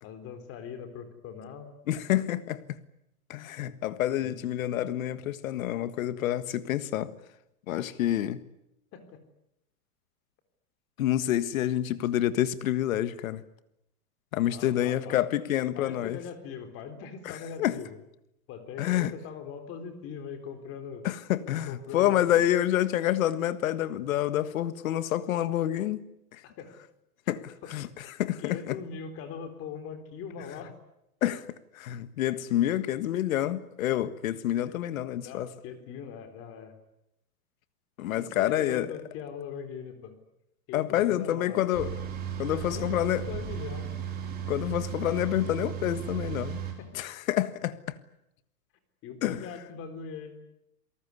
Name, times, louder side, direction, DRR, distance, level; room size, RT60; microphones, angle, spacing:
voice 1, 0.0-1.7 4.2-4.4 7.8-8.0 8.9-9.2 14.4-15.2 15.7-18.0 18.5-21.1 21.6-22.2 26.4-26.7 27.6-27.7 28.4-30.7 34.7-34.8 35.2-36.7 38.1-40.2 40.7-41.7 42.5-42.9 43.2-43.9 46.5-46.9 49.0-50.4, left 6 dB, 30° left, 3.8 m, -41 dB
voice 2, 1.9-2.8 3.3-7.1 7.7-8.4 11.0-13.4 14.3-16.2 17.2-17.7 18.8-19.1 21.0-26.0 27.3-27.9 28.1-28.8 31.2-31.4 31.8-35.5 38.0-38.9 40.7-41.9 42.4-43.3 44.5-46.6 46.9-47.8 49.2-49.4, left 12 dB, 60° left, 1.7 m, -28 dB
sound 1, 41.7-46.7, right 8 dB, 20° right, 4.4 m, -35 dB
27.5 x 19.0 x 9.7 m
supercardioid pair, 160°, 46 cm